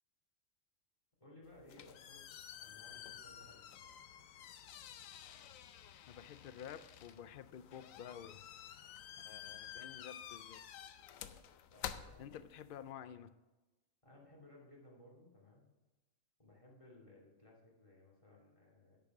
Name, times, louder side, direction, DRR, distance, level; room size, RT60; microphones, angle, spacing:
voice 1, 1.2-3.9 11.7-12.4 14.0-15.7 16.4-19.1, left 2 dB, 25° left, -2 dB, 2.6 m, -61 dB
sound 1, 1.4-12.9, left 9 dB, 85° left, 1.0 m, -51 dB
voice 2, 6.1-8.4 9.2-10.6 12.2-13.3, left 9 dB, 65° left, 13 dB, 0.5 m, -51 dB
10.5 x 5.9 x 5.9 m, 1.1 s
omnidirectional pair, 1.4 m